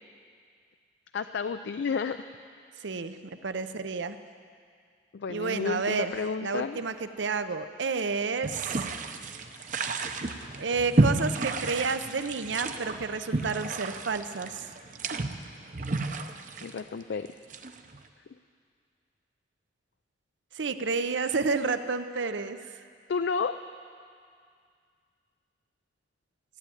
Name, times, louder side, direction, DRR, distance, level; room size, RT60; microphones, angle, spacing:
voice 1, 1.1-2.2 5.1-6.9 16.6-17.3 23.1-23.5, left 5 dB, 70° left, 9 dB, 0.4 m, -31 dB
voice 2, 2.8-4.2 5.3-8.9 10.6-14.7 20.5-22.6, right 4 dB, 85° right, 10 dB, 0.7 m, -30 dB
sound 1, 8.4-18.0, right 2 dB, 45° right, 0.7 m, -31 dB
14.5 x 8.3 x 9.8 m, 2.2 s
head